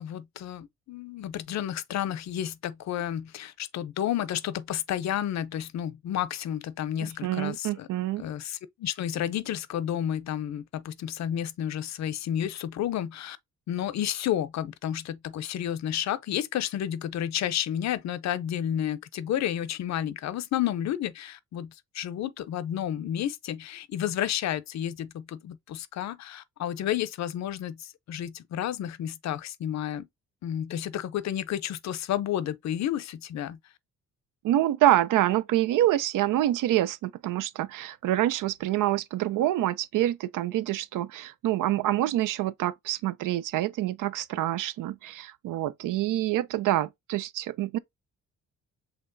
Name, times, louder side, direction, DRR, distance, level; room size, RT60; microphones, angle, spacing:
voice 1, 0.0-7.9 8.2-13.4 13.7-30.1 30.4-33.6, left 11 dB, 60° left, 0.5 m, -31 dB
voice 2, 7.0-8.2 34.4-47.8, right 14 dB, 85° right, 0.5 m, -26 dB
5.7 x 3.4 x 2.6 m
cardioid pair, 125°, 31 cm